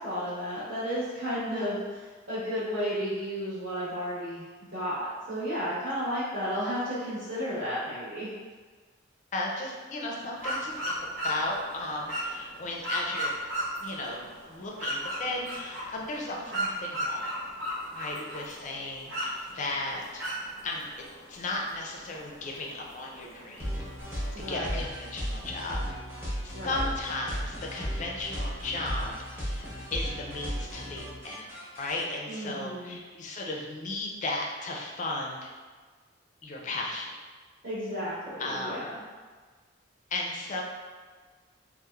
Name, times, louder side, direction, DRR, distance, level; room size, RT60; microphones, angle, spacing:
voice 1, 0.0-4.5 4.7-8.3 18.1-18.2 24.3-24.8 26.5-26.9 32.3-33.0 37.6-39.0, equal, 55° right, -13 dB, 1.0 m, -33 dB
voice 2, 9.3-10.9 11.2-13.3 13.8-17.3 17.9-20.2 20.6-23.8 24.4-25.8 26.4-29.6 29.9-31.5 31.8-35.5 36.4-37.1 38.4-38.9 40.1-40.6, left 2 dB, 40° left, -1 dB, 0.3 m, -35 dB
sound 1, 10.4-24.5, equal, 85° right, 0.9 m, -36 dB
sound 2, 23.6-32.0, equal, 15° right, 0.6 m, -35 dB
2.9 x 2.0 x 2.3 m, 1.5 s
head